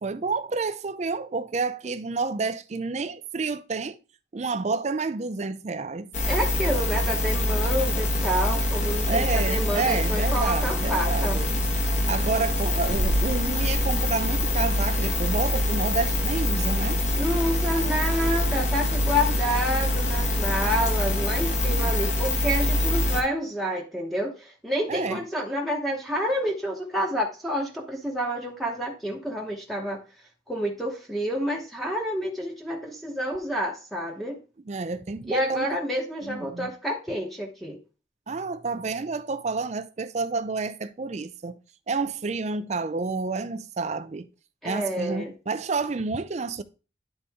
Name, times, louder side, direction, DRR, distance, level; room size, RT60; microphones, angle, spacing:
voice 1, 0.0-4.0 4.3-6.1 9.1-11.5 11.9-17.0 21.8-21.9 24.9-25.2 34.7-35.7 36.2-36.7 38.3-41.6 41.9-44.3 44.6-46.6, right 4 dB, 35° right, 0.4 m, -29 dB
sound 1, 6.1-23.2, left 1 dB, 40° left, 1.2 m, -25 dB
voice 2, 6.3-11.4 17.1-30.0 30.5-34.4 35.3-37.8 44.6-45.3, equal, ahead, 0.9 m, -29 dB
10.0 x 4.0 x 3.5 m
head